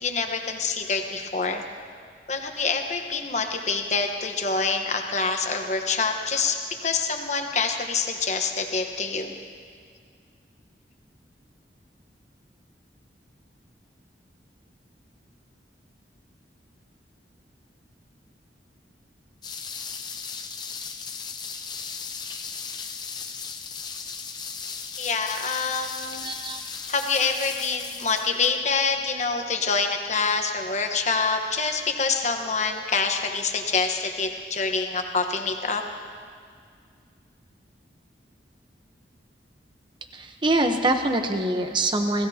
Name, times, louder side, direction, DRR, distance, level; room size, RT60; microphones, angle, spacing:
voice 1, 0.0-1.6 2.3-9.3 25.0-26.3 26.9-35.8, left 4 dB, 40° left, 4 dB, 1.2 m, -26 dB
sound 1, 19.4-28.6, left 5 dB, 25° left, 0.7 m, -36 dB
voice 2, 26.2-26.7 40.1-42.3, right 2 dB, 25° right, 6 dB, 0.9 m, -24 dB
27.5 x 16.0 x 2.9 m, 2.1 s
head